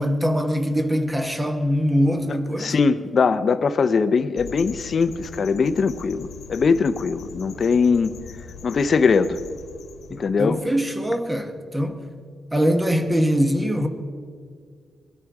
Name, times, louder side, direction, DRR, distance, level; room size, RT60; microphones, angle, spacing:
voice 1, 0.0-2.7 10.1-12.0 12.5-13.9, equal, 10° right, 1.0 m, -22 dB
voice 2, 2.6-8.1 8.6-9.4 10.1-10.6, left 5 dB, 40° left, 0.7 m, -21 dB
sound 1, 4.4-10.3, left 6 dB, 75° left, 1.3 m, -41 dB
22.0 x 13.0 x 4.8 m
wide cardioid pair, 150°, 0 cm